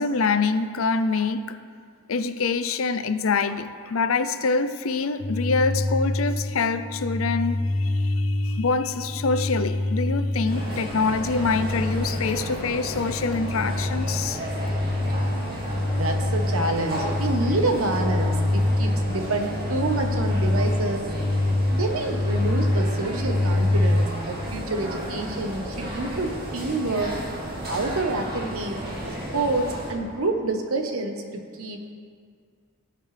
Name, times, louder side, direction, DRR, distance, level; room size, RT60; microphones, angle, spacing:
voice 1, 0.0-1.6 2.1-14.4, left 4 dB, 75° left, 11 dB, 0.6 m, -25 dB
sound 1, 5.2-24.1, left 1 dB, 45° left, 0.8 m, -26 dB
sound 2, 10.5-29.9, equal, 50° right, 2.3 m, -33 dB
voice 2, 15.9-21.1 21.7-27.2 27.7-28.8 29.1-31.9, right 2 dB, 85° right, 4 dB, 1.2 m, -28 dB
17.5 x 7.6 x 3.4 m, 2.1 s
head